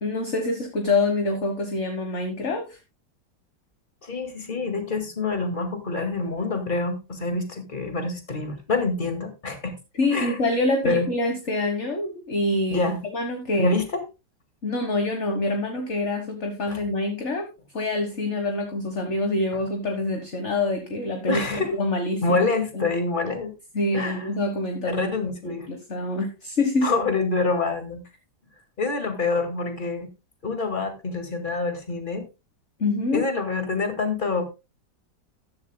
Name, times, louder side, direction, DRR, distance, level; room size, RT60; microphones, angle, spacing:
voice 1, 0.0-2.8 10.0-13.8 14.6-17.5 17.7-22.4 22.7-22.8 23.7-25.1 25.4-26.9 32.8-33.2, left 2 dB, 40° left, 5 dB, 1.5 m, -26 dB
voice 2, 4.0-9.7 10.1-10.4 10.8-11.1 12.7-13.0 13.6-13.9 16.7-16.8 21.3-21.7 22.2-23.5 23.9-24.3 24.8-25.7 26.8-28.0 28.8-30.1 30.4-32.3 33.1-34.4, left 3 dB, 25° left, 6 dB, 2.1 m, -26 dB
14.0 x 11.0 x 2.2 m, 0.27 s
omnidirectional pair, 2.0 m